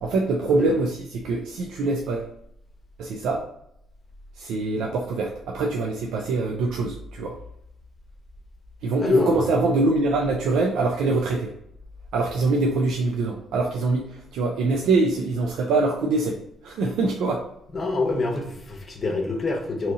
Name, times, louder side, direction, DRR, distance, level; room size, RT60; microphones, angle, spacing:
voice 1, 0.0-2.3 3.0-3.4 4.3-7.4 8.8-11.5 12.1-17.5, right 3 dB, 85° right, 0 dB, 0.4 m, -24 dB
voice 2, 9.0-9.3 17.7-19.9, left 3 dB, 35° left, 2 dB, 0.8 m, -25 dB
2.8 x 2.7 x 3.5 m, 0.76 s
cardioid pair, 90°, 0 cm